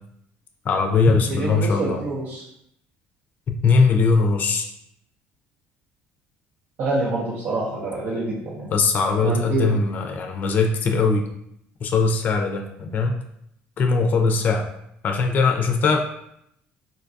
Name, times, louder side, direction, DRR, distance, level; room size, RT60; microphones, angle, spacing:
voice 1, 0.6-2.0 3.5-4.7 8.7-11.2 11.8-13.1 13.8-14.7 15.0-16.0, left 4 dB, 45° left, 4 dB, 0.4 m, -20 dB
voice 2, 1.3-2.4 6.8-8.7 9.2-9.6, right 2 dB, 70° right, -6 dB, 0.7 m, -26 dB
3.9 x 2.2 x 2.6 m, 0.75 s
cardioid pair, 110°, 4 cm